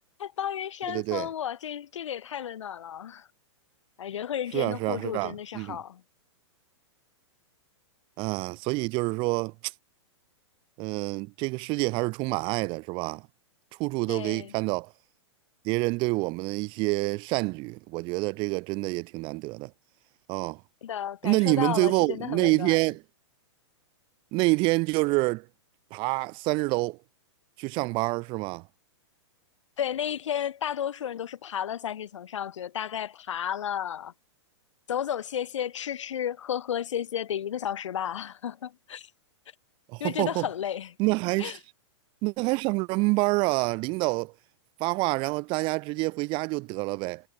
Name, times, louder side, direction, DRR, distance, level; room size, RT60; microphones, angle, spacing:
voice 1, 0.0-3.3 4.0-6.0 14.1-14.5 20.8-22.8 29.8-34.1 34.9-39.1 40.0-40.9 41.4-41.6, left 9 dB, 80° left, 3.2 m, -33 dB
voice 2, 0.9-1.3 4.5-5.8 8.2-9.7 10.8-13.2 13.8-14.9 15.6-19.7 20.3-20.6 21.2-23.0 24.3-25.4 25.9-27.0 27.6-28.6 39.9-40.5 41.0-41.6 42.2-44.3 44.8-47.2, right 25 dB, 30° right, 2.2 m, -27 dB
hypercardioid pair, 155°, 15 cm